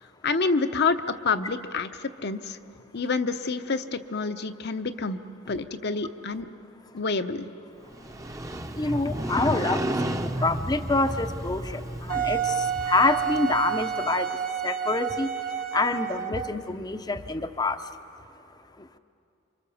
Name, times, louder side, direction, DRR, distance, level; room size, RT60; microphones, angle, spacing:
voice 1, 0.2-2.6 2.9-5.2 5.5-6.5 6.9-7.5, left 4 dB, 55° left, 9 dB, 0.9 m, -28 dB
Motorcycle, 7.9-13.8, right 1 dB, 15° right, 0.8 m, -32 dB
voice 2, 8.7-14.3 14.6-17.8 18.8-18.9, left 3 dB, 20° left, 9 dB, 0.7 m, -27 dB
Wind instrument woodwind instrument, 12.1-16.6, right 8 dB, 45° right, 1.1 m, -29 dB
28.5 x 25.5 x 7.1 m, 2.6 s
head